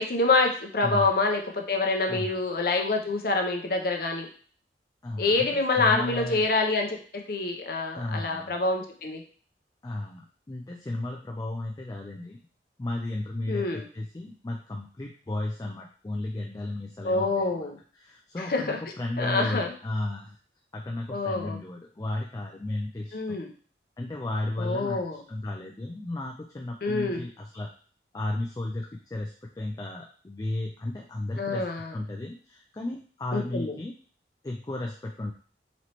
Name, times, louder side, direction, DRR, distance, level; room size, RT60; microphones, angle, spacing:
voice 1, 0.0-4.3 5.2-7.0 7.3-9.2 13.5-13.8 17.0-17.7 18.4-18.8 19.2-19.7 21.1-21.6 23.1-23.5 24.6-25.2 26.8-27.2 31.4-31.9 33.3-33.8, left 3 dB, 55° left, 3 dB, 0.6 m, -26 dB
voice 2, 0.8-1.1 2.1-2.4 5.0-6.5 7.9-8.7 9.8-10.2 10.5-12.4 12.8-17.7 17.9-20.4 20.7-23.4 24.0-25.0 25.3-27.7 28.1-31.7 31.9-33.9 34.4-35.3, left 2 dB, 20° left, 0 dB, 0.3 m, -34 dB
4.1 x 3.1 x 2.9 m, 0.43 s
head